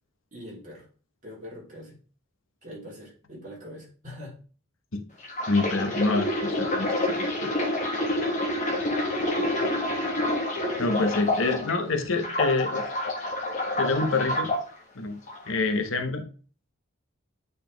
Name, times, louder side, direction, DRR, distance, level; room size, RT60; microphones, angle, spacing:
voice 1, 0.3-0.9 1.2-2.0 2.6-4.4 10.7-11.4, equal, 35° right, -4 dB, 3.2 m, -43 dB
sound 1, 5.2-11.7 12.1-14.6 15.3-15.5, left 1 dB, 35° left, 1.4 m, -28 dB
voice 2, 5.5-7.5 10.8-12.9 13.8-14.5 14.9-15.2 15.5-16.3, left 3 dB, 65° left, 6 dB, 1.0 m, -27 dB
8.6 x 4.2 x 3.4 m, 0.39 s
head